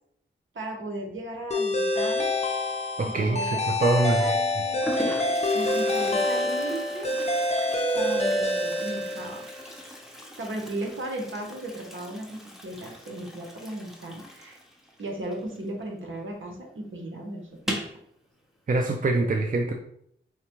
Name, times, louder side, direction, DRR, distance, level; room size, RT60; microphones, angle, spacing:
voice 1, 0.5-2.3 3.0-3.6 4.2-5.2 5.5-7.1 7.9-9.7 10.4-14.6 15.0-17.8, right 1 dB, 70° right, 1 dB, 1.0 m, -36 dB
sound 1, 1.5-9.6, left 1 dB, 30° left, 0.6 m, -26 dB
voice 2, 3.0-4.3 18.7-19.7, right 2 dB, 40° right, 3 dB, 0.4 m, -24 dB
Toilet flush, 3.4-3.8 4.5-4.6 4.8-16.1 16.4-16.5 16.8-16.9 17.5-18.0, equal, ahead, 0.8 m, -39 dB
4.7 x 2.2 x 3.0 m, 0.68 s
cardioid pair, 45°, 21 cm